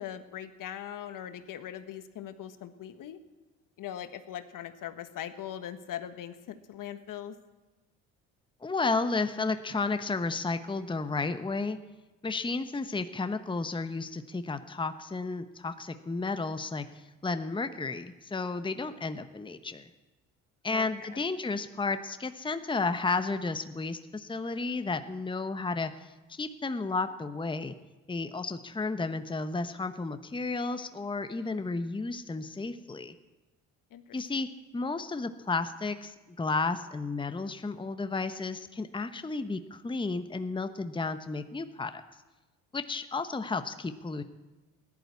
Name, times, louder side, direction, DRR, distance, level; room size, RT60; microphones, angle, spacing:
voice 1, 0.0-3.2 3.8-7.3 20.6-20.9 21.1-21.2 33.9-34.2, left 10 dB, 60° left, 10 dB, 1.4 m, -40 dB
voice 2, 8.6-11.8 12.2-19.9 20.6-27.7 28.1-33.1 34.1-34.5 34.7-42.0 42.7-44.2, left 3 dB, 15° left, 9 dB, 1.0 m, -32 dB
15.5 x 11.5 x 8.2 m, 1.2 s
supercardioid pair, 70°, 36 cm